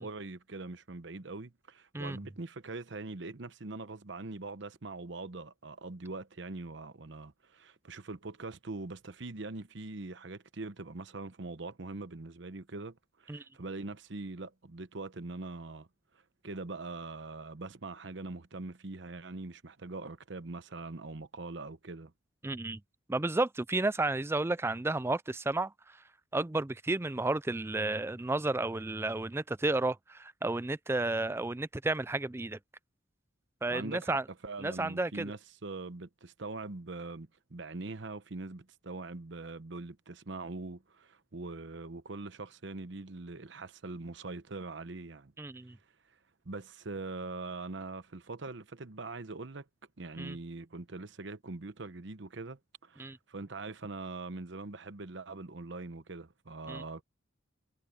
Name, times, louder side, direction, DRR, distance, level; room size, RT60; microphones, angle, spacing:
voice 1, 0.0-15.9 16.4-22.1 33.7-45.3 46.4-49.7 50.0-57.0, right 3 dB, 65° right, 0.9 m, -42 dB
voice 2, 22.4-22.8 23.1-26.0 26.3-32.6 33.6-34.2 34.6-35.3 45.4-45.8 50.2-50.4 53.0-53.2 56.7-56.8, right 2 dB, 15° right, 0.4 m, -32 dB
head